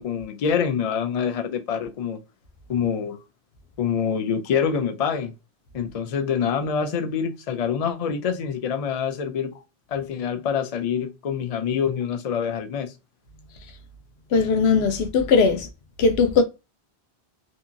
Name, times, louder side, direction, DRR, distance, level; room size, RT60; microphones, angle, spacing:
voice 1, 0.0-2.2 2.7-3.2 3.8-5.3 5.7-9.5 9.9-12.9, left 7 dB, 55° left, 0.4 m, -26 dB
voice 2, 14.3-15.7 16.0-16.4, left 5 dB, 80° left, 0.8 m, -19 dB
2.8 x 2.5 x 2.5 m
omnidirectional pair, 1.1 m